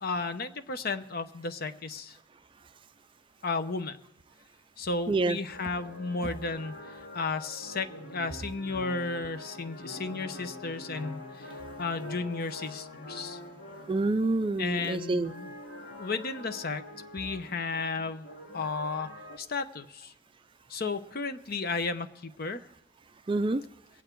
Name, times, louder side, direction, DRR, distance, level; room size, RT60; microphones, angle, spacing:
voice 1, 0.0-2.2 3.4-4.0 4.8-11.5 11.8-13.4 14.6-15.5 16.0-16.8 17.1-18.3 18.5-19.1 19.4-20.1 20.7-22.7, left 4 dB, 50° left, 0.8 m, -33 dB
voice 2, 5.1-5.4 13.9-15.3 23.3-23.6, right 2 dB, 25° right, 0.4 m, -27 dB
sound 1, 5.5-19.4, left 1 dB, 80° left, 2.2 m, -44 dB
22.5 x 9.0 x 4.6 m
head